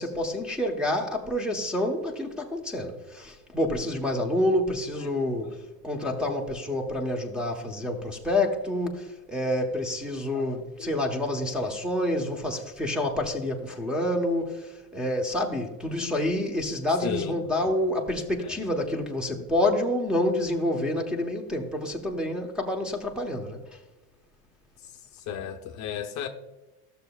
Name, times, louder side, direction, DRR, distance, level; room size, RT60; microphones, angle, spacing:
voice 1, 0.0-23.6, left 1 dB, ahead, 1.0 m, -28 dB
voice 2, 6.0-6.5 10.4-10.5 10.8-10.9 13.3-13.4 16.0-16.1 17.0-17.4 18.4-18.6 25.3-26.3, left 9 dB, 45° left, 0.7 m, -35 dB
13.0 x 6.9 x 2.3 m
supercardioid pair, 130°, 40 cm